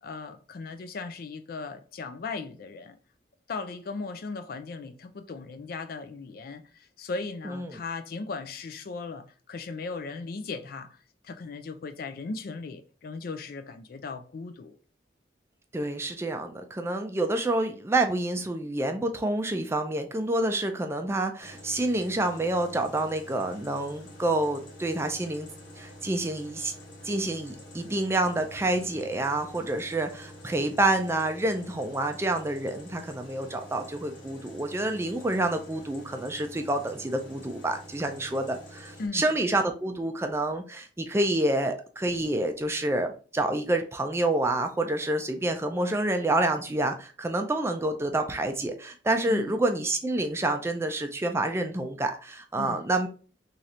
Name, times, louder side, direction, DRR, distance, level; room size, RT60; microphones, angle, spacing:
voice 1, 0.0-3.0 3.5-11.0 11.2-14.8 39.0-39.3 49.2-49.5 52.6-52.8, left 4 dB, 55° left, 0.4 m, -37 dB
voice 2, 7.4-7.8 15.7-25.5 25.8-26.7 27.0-53.1, right 2 dB, 15° right, 0.4 m, -28 dB
sound 1, 21.4-39.1, equal, 85° left, 1.3 m, -47 dB
3.1 x 2.9 x 3.7 m
head